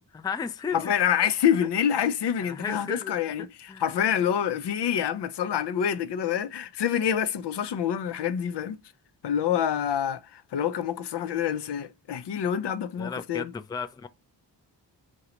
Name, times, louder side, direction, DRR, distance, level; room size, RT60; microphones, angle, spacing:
voice 1, 0.0-0.9 2.4-3.1 3.4-3.8 13.0-14.1, left 6 dB, 10° left, 0.3 m, -34 dB
voice 2, 0.7-8.8 9.2-13.5, left 9 dB, 70° left, 0.5 m, -27 dB
3.7 x 2.2 x 2.9 m
cardioid pair, 55°, 43 cm